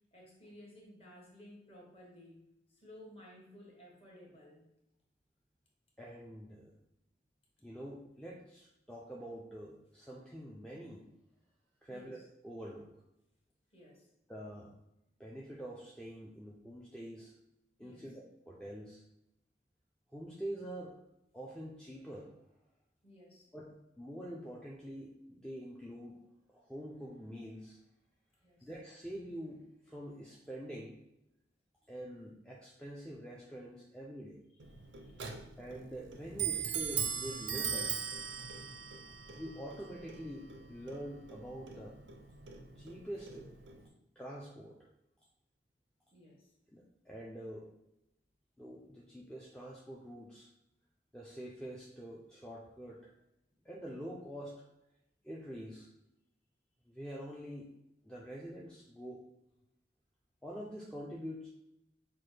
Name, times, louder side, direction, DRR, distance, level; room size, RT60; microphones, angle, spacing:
voice 1, 0.1-4.7 11.9-12.2 13.7-14.1 17.8-18.1 23.0-23.5 28.4-28.7 34.5-35.5 46.1-46.5, left 1 dB, 30° left, -3 dB, 1.1 m, -56 dB
voice 2, 6.0-6.7 7.6-11.0 11.8-12.9 14.3-14.8 15.2-17.3 17.8-19.0 20.1-21.0 21.3-22.3 23.5-26.2 26.5-27.8 28.6-31.0 31.9-34.4 35.6-38.1 39.4-42.0 42.8-43.5 44.2-44.9 46.7-47.7 48.6-50.5 51.1-53.1 53.6-54.7 55.2-55.9 56.9-57.7 58.0-59.3 60.4-61.5, equal, 5° left, -4 dB, 0.4 m, -46 dB
Clock, 34.6-43.9, right 7 dB, 75° right, 0.5 m, -40 dB
5.9 x 2.2 x 3.2 m, 0.85 s
head